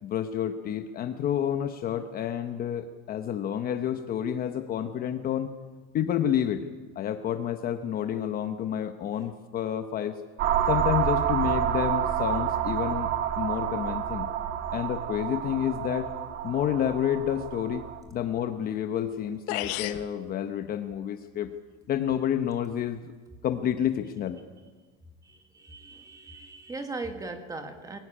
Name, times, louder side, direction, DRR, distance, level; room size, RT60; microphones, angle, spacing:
voice 1, 0.0-5.5 5.9-6.6 7.0-10.2 10.7-13.1 13.4-14.3 14.7-16.1 16.4-21.5 21.9-23.0 23.4-24.4, left 10 dB, 30° left, 8 dB, 0.9 m, -29 dB
sound 1, 10.4-18.0, right 9 dB, 35° right, 1.8 m, -29 dB
sound 2, 19.1-19.2 19.5-20.1, left 16 dB, 55° left, 1.3 m, -31 dB
voice 2, 25.2-28.0, right 3 dB, 10° right, 7 dB, 1.8 m, -39 dB
23.5 x 18.0 x 10.0 m, 1.3 s
cardioid pair, 175°, 32 cm